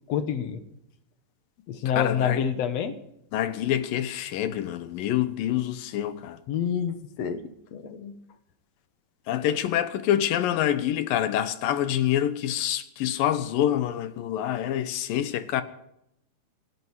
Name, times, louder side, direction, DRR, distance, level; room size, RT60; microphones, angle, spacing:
voice 1, 0.1-0.6 1.7-3.0 6.5-7.4 7.7-8.1, left 8 dB, 60° left, 1.9 m, -27 dB
voice 2, 1.9-2.4 3.3-6.4 9.3-15.6, left 11 dB, 80° left, 2.7 m, -26 dB
26.5 x 11.0 x 4.8 m
omnidirectional pair, 4.0 m